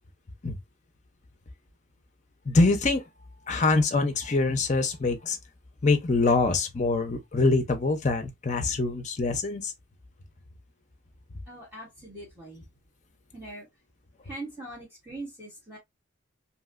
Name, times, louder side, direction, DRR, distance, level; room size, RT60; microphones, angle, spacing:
voice 1, 2.5-3.0 3.5-5.4 5.8-9.7, left 3 dB, 35° left, 0.5 m, -24 dB
voice 2, 11.5-12.7 13.3-13.7 14.2-15.8, right 2 dB, 10° right, 1.3 m, -41 dB
3.0 x 2.7 x 2.4 m
head